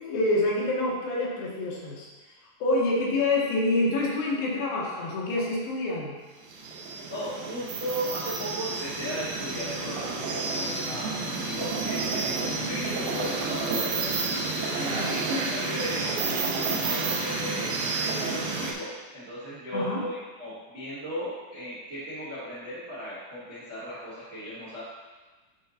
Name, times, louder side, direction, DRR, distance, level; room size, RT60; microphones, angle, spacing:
voice 1, 0.0-2.1 2.6-6.1 14.9-15.1 19.7-20.0, left 2 dB, 75° left, -4 dB, 3.0 m, -27 dB
sound 1, 6.5-18.7, right 3 dB, 75° right, 2.6 m, -30 dB
voice 2, 7.1-16.1 16.7-24.8, equal, 30° right, -9 dB, 1.1 m, -36 dB
10.5 x 4.5 x 2.8 m, 1.2 s
omnidirectional pair, 4.2 m